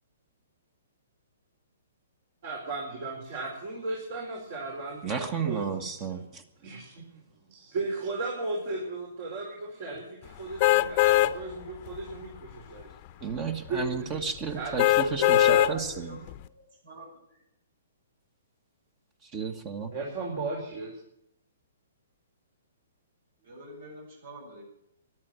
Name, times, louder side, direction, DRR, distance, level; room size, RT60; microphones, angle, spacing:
voice 1, 2.4-6.2 6.6-7.2 7.5-12.9 13.7-14.2 14.5-15.9 19.9-21.0, right 2 dB, 55° right, -1 dB, 4.9 m, -36 dB
voice 2, 5.0-6.4 13.2-16.2 19.2-19.9, right 6 dB, 30° right, 8 dB, 1.5 m, -32 dB
sound 1, 10.6-11.3 11.9-12.0 14.8-15.7 16.3-16.4, left 14 dB, 40° left, 0.8 m, -20 dB
voice 3, 15.5-16.2 16.8-17.4 23.4-24.6, right 1 dB, 75° right, -3 dB, 8.0 m, -46 dB
14.0 x 11.5 x 9.0 m, 0.77 s
hypercardioid pair, 130°, 0 cm